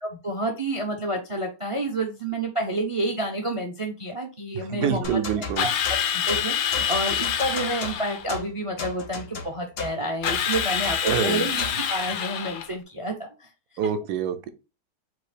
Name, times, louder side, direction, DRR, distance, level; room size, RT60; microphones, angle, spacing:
voice 1, 0.0-13.5, right 1 dB, 55° right, 0.3 m, -29 dB
voice 2, 4.5-5.7 11.0-11.5 13.8-14.5, right 8 dB, 75° right, 1.1 m, -26 dB
sound 1, 5.0-11.9, left 3 dB, 55° left, 0.7 m, -36 dB
Drill, 5.6-8.3 10.2-12.7, left 9 dB, 75° left, 1.1 m, -27 dB
4.0 x 2.7 x 4.8 m
omnidirectional pair, 1.8 m